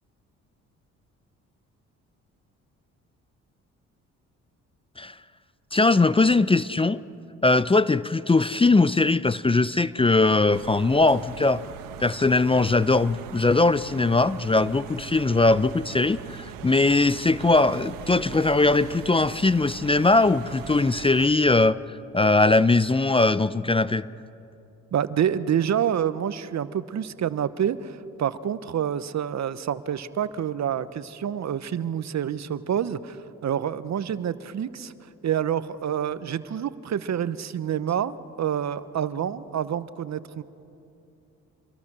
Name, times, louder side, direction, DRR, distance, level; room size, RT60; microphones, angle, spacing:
voice 1, 5.7-7.0 7.4-11.6 12.0-21.8 22.1-24.0, left 3 dB, 15° left, 16 dB, 0.6 m, -20 dB
sound 1, 10.5-21.3, right 9 dB, 85° right, 1.2 m, -41 dB
voice 2, 24.9-33.2 33.4-34.9 35.2-40.4, right 9 dB, 55° right, 14 dB, 1.0 m, -27 dB
27.0 x 22.5 x 6.2 m, 2.7 s
supercardioid pair, 55°, 33 cm